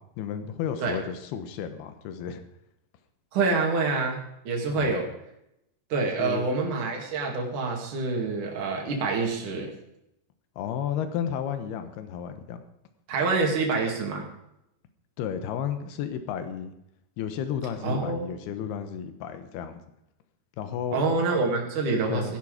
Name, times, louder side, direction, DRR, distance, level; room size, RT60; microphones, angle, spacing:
voice 1, 0.0-2.4 4.7-5.0 6.2-6.5 10.6-12.6 15.2-16.7 17.2-19.8 20.6-21.0 22.1-22.3, left 8 dB, 80° left, 9 dB, 3.1 m, -32 dB
voice 2, 3.3-4.2 4.5-5.1 5.9-9.7 13.1-14.2 17.8-18.3 20.9-22.4, right 3 dB, 55° right, 0 dB, 3.8 m, -26 dB
16.0 x 10.5 x 5.1 m, 0.82 s
omnidirectional pair, 4.5 m